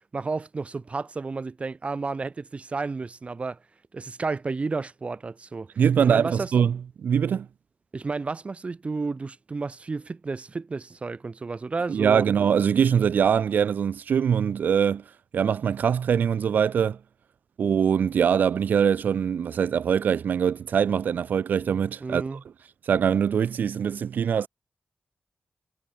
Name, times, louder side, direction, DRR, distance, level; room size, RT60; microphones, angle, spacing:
voice 1, 0.1-3.6 3.9-5.7 6.0-6.5 7.9-12.3 22.0-22.4, right 4 dB, 45° right, 3.1 m, -31 dB
voice 2, 5.8-7.5 11.9-15.0 15.3-17.0 17.6-22.2 22.9-24.5, right 7 dB, 85° right, 3.1 m, -23 dB
cardioid pair, 65°, 3 cm